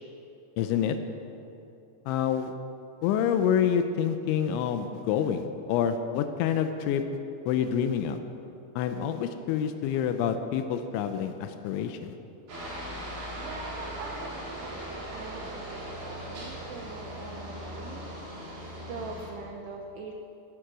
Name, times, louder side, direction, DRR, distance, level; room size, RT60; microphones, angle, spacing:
voice 1, 0.6-1.0 2.1-2.5 3.0-7.0 7.5-8.2 8.8-12.1, left 8 dB, 85° left, 8 dB, 3.1 m, -27 dB
Aircraft, 12.5-19.3, equal, 55° right, 5.9 m, -39 dB
voice 2, 13.3-18.2 18.8-20.1, right 3 dB, 75° right, 2 dB, 2.8 m, -43 dB
19.0 x 10.0 x 6.2 m, 2.8 s
omnidirectional pair, 5.2 m